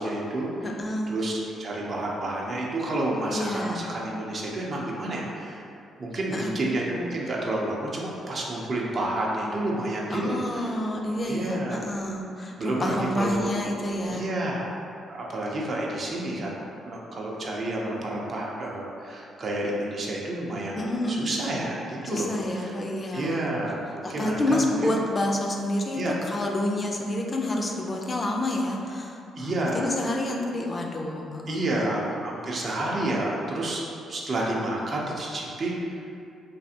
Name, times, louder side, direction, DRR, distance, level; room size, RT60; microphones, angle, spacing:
voice 1, 0.0-0.5 1.1-5.6 6.0-10.7 11.3-11.9 12.6-13.5 14.1-14.7 15.1-20.8 21.1-22.3 22.6-22.7 23.1-24.6 25.9-26.1 29.3-29.9 31.5-36.0, right 1 dB, 50° right, -3 dB, 0.5 m, -30 dB
voice 2, 0.6-1.2 3.3-3.9 6.3-6.6 10.1-14.3 20.8-21.3 22.1-23.5 24.0-31.9, left 1 dB, 30° left, 1 dB, 0.4 m, -29 dB
3.3 x 2.4 x 2.7 m, 2.5 s
cardioid pair, 90°, 0 cm